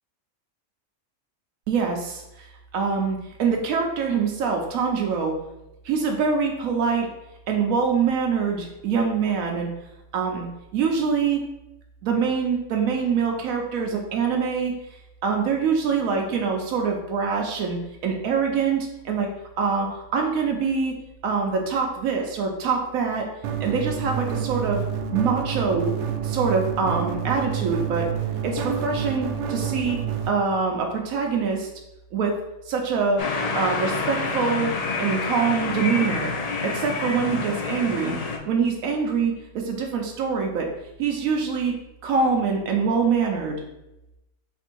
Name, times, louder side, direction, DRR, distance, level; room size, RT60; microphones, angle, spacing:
voice 1, 1.7-5.3 5.8-7.1 7.5-9.7 10.1-11.4 12.0-14.7 15.2-19.3 19.6-21.0 21.2-23.3 23.6-24.8 25.1-25.9 26.2-28.1 28.4-30.0 30.3-31.7 32.1-32.3 32.7-33.3 33.5-34.7 35.0-36.3 36.6-38.2 38.4-40.7 41.0-41.7 42.0-43.6, right 5 dB, 85° right, 1 dB, 1.1 m, -24 dB
sound 1, 23.4-30.3, right 7 dB, 65° right, 0.8 m, -28 dB
sound 2, 33.2-38.4, left 4 dB, 60° left, 0.4 m, -28 dB
4.3 x 2.6 x 4.4 m, 0.92 s
omnidirectional pair, 1.4 m